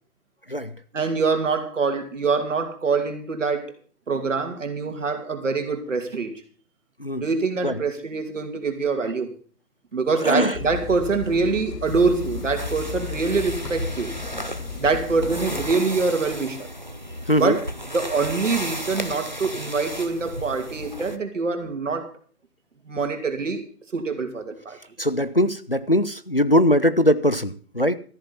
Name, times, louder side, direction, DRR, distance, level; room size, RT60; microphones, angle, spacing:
voice 1, 0.9-3.7 4.1-6.3 7.1-9.3 9.9-14.1 14.8-16.7 17.3-17.6 17.9-22.1 22.9-23.6 23.9-24.8, right 4 dB, 50° right, 2.7 m, -24 dB
voice 2, 10.2-10.6 17.3-17.6 25.0-28.0, equal, 40° left, 0.5 m, -21 dB
sound 1, 10.5-15.7, left 5 dB, 80° left, 1.6 m, -34 dB
sound 2, 11.8-21.2, equal, 30° right, 0.6 m, -34 dB
14.0 x 8.4 x 7.0 m
hypercardioid pair, 175°, 46 cm